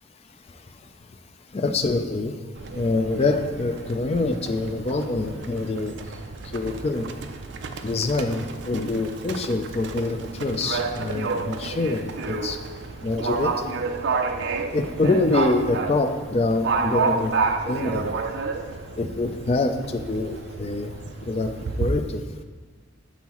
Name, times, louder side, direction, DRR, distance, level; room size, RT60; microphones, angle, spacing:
voice 1, 1.5-2.3 2.7-6.0 6.5-7.1 7.8-12.6 13.0-13.7 14.7-17.4 17.7-18.1 19.0-20.9 21.2-22.2, left 2 dB, 30° left, 7 dB, 0.4 m, -25 dB
Livestock farm animals working animals, 2.5-21.9, right 4 dB, 60° right, 0.4 m, -30 dB
7.2 x 5.5 x 3.0 m, 1.4 s
head